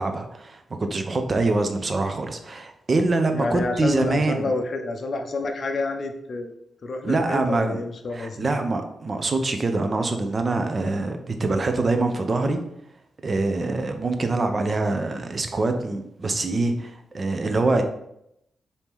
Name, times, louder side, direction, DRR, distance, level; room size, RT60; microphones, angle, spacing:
voice 1, 0.0-4.5 7.0-7.8 8.1-12.6 13.2-17.8, right 3 dB, 40° right, 6 dB, 0.5 m, -24 dB
voice 2, 3.3-6.5 6.8-8.6, left 3 dB, 50° left, 4 dB, 0.5 m, -29 dB
3.5 x 2.7 x 4.5 m, 0.79 s
cardioid pair, 90°, 0 cm